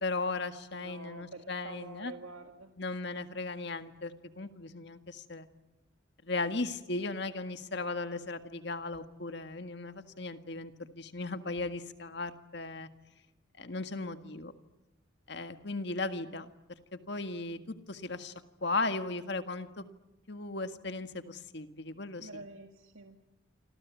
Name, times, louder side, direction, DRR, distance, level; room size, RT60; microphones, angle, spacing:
voice 1, 0.0-2.1 2.8-5.5 6.2-12.9 13.6-14.5 15.3-16.5 16.9-17.6 17.9-18.3 18.6-19.8 20.3-22.4, left 3 dB, 55° left, 8 dB, 1.7 m, -36 dB
voice 2, 0.7-2.7 22.2-23.2, right 3 dB, 90° right, 4 dB, 1.9 m, -47 dB
27.0 x 26.5 x 8.4 m, 0.98 s
head